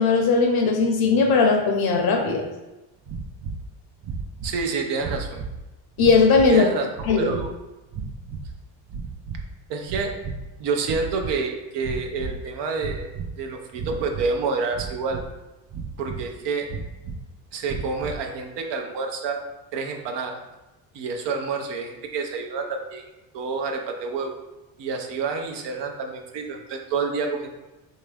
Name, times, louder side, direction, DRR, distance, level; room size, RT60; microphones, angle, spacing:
voice 1, 0.0-2.4 6.0-6.7 7.1-7.3, left 4 dB, 55° left, 3 dB, 0.8 m, -18 dB
sound 1, 3.0-3.7 4.0-4.6 5.0-5.6 6.0-6.6 6.9-7.5 7.9-8.6 8.9-9.5 9.8-10.5 10.8-11.4 11.8-12.4 12.8-13.3 13.7-14.3 14.7-15.3 15.7-16.3 16.7-17.2 17.6-18.2, right 4 dB, 40° right, 0.4 m, -34 dB
voice 2, 4.4-5.4 6.5-6.9 7.2-7.6 9.7-10.1 10.6-13.1 13.4-15.2 16.0-16.7 17.5-19.4 19.7-20.4 20.9-23.0 23.3-24.3 24.8-27.5, right 4 dB, 65° right, 3 dB, 0.7 m, -28 dB
3.5 x 2.8 x 3.3 m, 1.0 s
cardioid pair, 110°, 45 cm